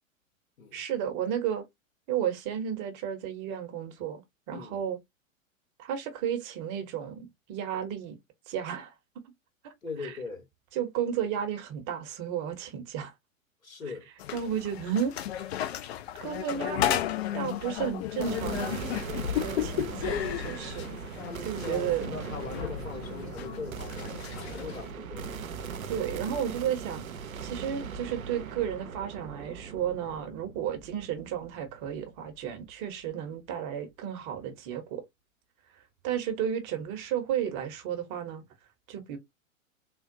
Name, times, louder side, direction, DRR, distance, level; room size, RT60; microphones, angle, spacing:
voice 1, 0.7-1.6 2.1-4.2 4.5-5.0 5.8-8.2 8.5-8.9 9.6-9.7 10.0-10.1 10.7-13.1 14.3-15.1 15.5-15.7 16.2-17.0 17.3-18.8 19.3-20.9 21.4-22.1 25.9-27.0 27.4-35.0 36.0-38.4 38.9-39.2, right 9 dB, 35° right, 0.8 m, -33 dB
voice 2, 4.5-4.8 9.8-10.5 13.6-14.1 19.4-19.8 21.2-25.5, left 4 dB, 85° left, 1.1 m, -40 dB
sound 1, 14.2-24.9, left 11 dB, 50° left, 0.6 m, -34 dB
sound 2, 18.2-32.5, right 6 dB, 85° right, 0.6 m, -39 dB
3.6 x 2.2 x 2.6 m
figure-of-eight pair, 105°, 41 cm